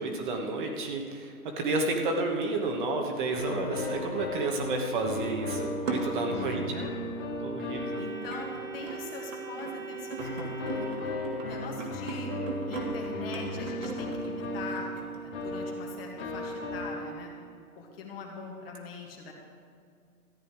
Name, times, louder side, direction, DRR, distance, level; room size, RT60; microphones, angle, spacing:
voice 1, 0.0-6.6 7.4-8.0, right 3 dB, 30° right, 2 dB, 1.2 m, -31 dB
sound 1, 3.3-9.1 10.2-17.6, left 1 dB, 15° left, 0.9 m, -36 dB
sound 2, 5.9-6.8 7.6-7.7 8.3-15.9 16.2-16.3, right 4 dB, 55° right, 2.0 m, -39 dB
voice 2, 6.2-7.0 8.0-10.9 11.4-12.4 12.7-17.3 17.8-19.3, left 4 dB, 40° left, 0 dB, 2.0 m, -42 dB
Organ, 7.7-11.7, right 5 dB, 15° right, 1.6 m, -42 dB
14.0 x 9.5 x 4.7 m, 2.2 s
hypercardioid pair, 145°, 46 cm